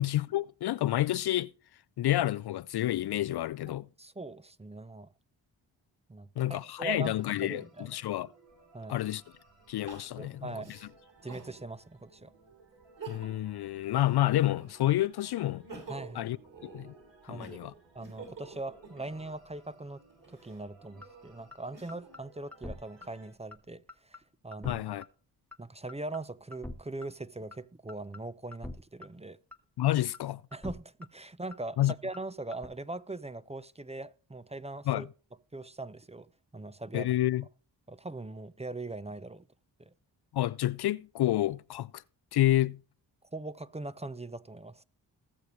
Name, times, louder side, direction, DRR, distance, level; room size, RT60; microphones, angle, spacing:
voice 1, 0.0-1.5 2.0-3.9 6.4-8.3 8.9-9.2 9.7-10.5 13.1-15.6 16.2-16.4 16.6-16.9 17.2-17.7 24.6-25.0 29.8-30.4 31.8-31.9 34.9-35.0 36.9-37.4 40.3-42.0 42.3-42.8, left 14 dB, 60° left, 0.5 m, -29 dB
voice 2, 3.7-5.1 6.1-8.0 8.7-9.0 10.2-10.7 11.2-12.3 15.9-16.3 17.3-17.6 17.9-20.0 20.3-24.8 25.6-29.4 30.5-35.1 35.5-37.1 37.9-39.5 39.9-40.0 43.3-44.8, right 2 dB, 15° right, 0.7 m, -41 dB
sound 1, 7.1-23.3, right 3 dB, 70° right, 5.6 m, -62 dB
Crying sobbing, 8.5-8.6 9.9-11.5 12.1-12.2 12.8-13.5 13.9-14.9 15.4-19.4 20.1-22.2 22.8-23.6, right 4 dB, 45° right, 7.5 m, -49 dB
sound 2, 21.0-21.1 21.5-21.6 21.9-22.2 22.5-22.7 23.0-23.1 23.5-23.6 23.9-24.2 24.5-24.8 25.0-25.1 25.5-25.6 25.9-26.2 26.5-26.8 27.0-27.1 27.5-27.6 27.9-28.2 28.5-28.7 29.0-29.1 29.5-29.6 29.9-30.2 30.5-30.7 31.0-31.1 31.5-31.6 31.9-32.2 32.5-32.7, left 2 dB, 5° left, 1.5 m, -43 dB
19.5 x 6.8 x 3.2 m
supercardioid pair, 45°, 46 cm